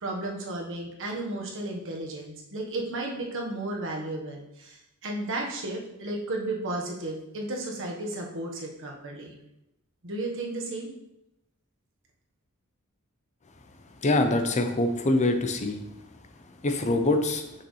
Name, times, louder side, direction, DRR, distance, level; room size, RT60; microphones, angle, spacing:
voice 1, 0.0-9.3 10.0-10.9, right 2 dB, 60° right, -1 dB, 1.3 m, -33 dB
voice 2, 14.0-15.8 16.6-17.4, left 2 dB, 30° left, 6 dB, 0.7 m, -24 dB
6.4 x 6.1 x 3.2 m, 0.88 s
head